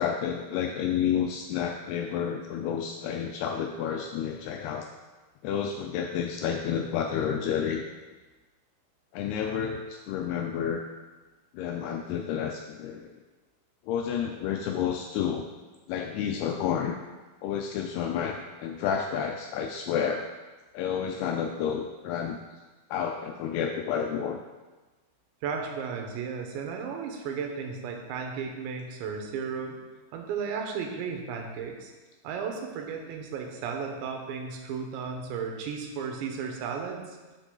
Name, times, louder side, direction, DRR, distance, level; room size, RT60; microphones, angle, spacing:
voice 1, 0.0-4.9 5.4-7.8 9.1-10.9 11.5-13.1 13.9-15.5 15.9-17.0 17.4-20.3 20.7-22.4 22.9-24.4, left 8 dB, 85° left, 3 dB, 2.3 m, -30 dB
voice 2, 25.4-29.8 30.1-31.9 32.2-37.2, right 6 dB, 85° right, 2 dB, 3.3 m, -34 dB
12.0 x 5.4 x 3.8 m, 1.2 s
omnidirectional pair, 5.1 m